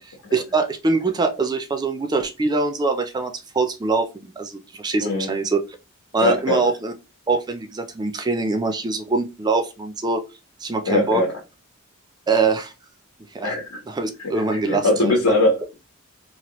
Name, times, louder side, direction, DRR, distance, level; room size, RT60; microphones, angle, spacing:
voice 1, 0.3-5.6 6.1-6.9 7.3-10.2 10.6-11.2 12.3-12.7 13.3-13.6 13.9-15.1, right 3 dB, 20° right, 0.3 m, -23 dB
voice 2, 5.0-5.3 6.2-6.6 10.8-11.3 13.4-13.8 14.7-15.7, left 1 dB, 90° left, 1.1 m, -20 dB
2.8 x 2.5 x 2.9 m
head